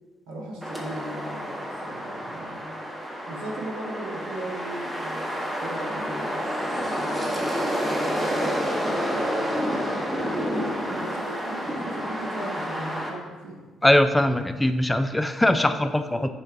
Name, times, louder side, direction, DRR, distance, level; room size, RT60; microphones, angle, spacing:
voice 1, 0.3-2.7 3.3-10.3 10.9-13.6 15.4-16.3, right 1 dB, 75° right, -1 dB, 1.0 m, -38 dB
sound 1, 0.6-13.1, equal, 15° right, 1.5 m, -29 dB
voice 2, 13.8-16.3, left 1 dB, 15° left, 9 dB, 0.4 m, -21 dB
7.2 x 3.3 x 4.6 m, 1.3 s
hypercardioid pair, 45°, 0 cm